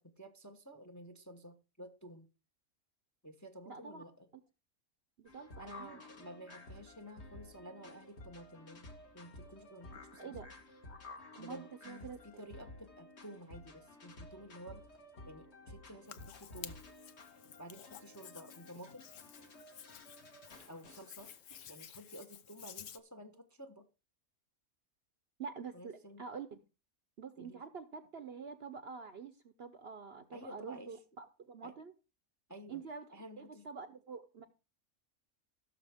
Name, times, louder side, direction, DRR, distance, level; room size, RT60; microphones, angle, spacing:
voice 1, 0.0-2.3 3.2-4.3 5.6-8.9 9.1-10.4 11.4-14.8 15.2-16.9 17.6-19.1 20.7-21.3 21.7-23.9 25.7-26.2 27.3-27.6 30.3-31.0 31.6-31.7 32.5-32.8 33.1-33.7, equal, 15° left, 8 dB, 0.8 m, -52 dB
voice 2, 3.7-4.0 5.2-6.0 10.2-10.5 11.4-12.4 25.4-26.6 27.2-31.9 32.7-33.0 33.4-34.5, right 5 dB, 50° right, 10 dB, 0.9 m, -47 dB
sound 1, 5.3-21.7, left 2 dB, 50° left, 1.8 m, -54 dB
Hands, 16.1-23.0, left 9 dB, 65° left, 1.1 m, -53 dB
17.0 x 6.7 x 3.5 m, 0.31 s
omnidirectional pair, 1.5 m